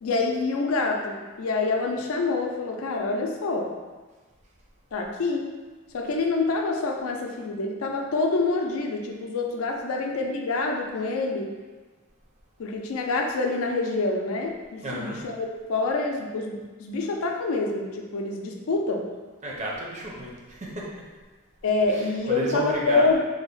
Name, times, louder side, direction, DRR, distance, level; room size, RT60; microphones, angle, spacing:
voice 1, 0.0-3.7 4.9-5.4 5.9-11.5 12.6-19.1 21.6-23.2, left 3 dB, 90° left, 2 dB, 0.4 m, -26 dB
voice 2, 14.8-15.2 19.4-20.8 21.9-23.1, right 1 dB, 35° right, -3 dB, 0.5 m, -32 dB
3.3 x 2.0 x 3.8 m, 1.3 s
head